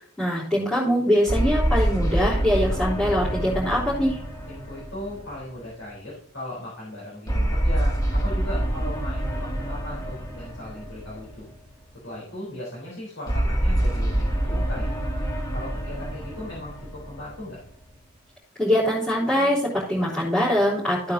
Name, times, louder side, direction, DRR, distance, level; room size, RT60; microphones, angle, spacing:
voice 1, 0.0-4.2 18.6-21.1, equal, ahead, -9 dB, 3.7 m, -23 dB
sound 1, 1.3-5.8 7.3-11.6 13.3-17.8, right 1 dB, 15° left, 2.6 m, -26 dB
voice 2, 4.5-11.4 12.0-14.9 15.5-17.6, left 1 dB, 60° left, -6 dB, 4.1 m, -37 dB
14.0 x 8.7 x 2.9 m, 0.65 s
head